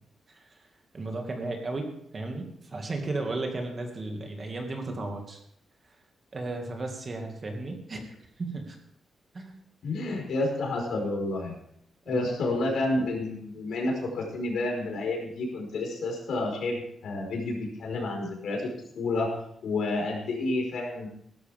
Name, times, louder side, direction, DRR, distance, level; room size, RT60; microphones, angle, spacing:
voice 1, 0.9-2.5 2.7-5.4 6.3-8.0 8.4-8.8 9.3-9.5 12.1-12.4, right 2 dB, 30° right, 3 dB, 2.0 m, -34 dB
voice 2, 9.8-11.5 12.0-18.7 18.9-19.3 19.6-21.1, left 2 dB, 70° left, 1 dB, 4.8 m, -30 dB
17.0 x 13.0 x 3.6 m, 0.70 s
wide cardioid pair, 180°, 0 cm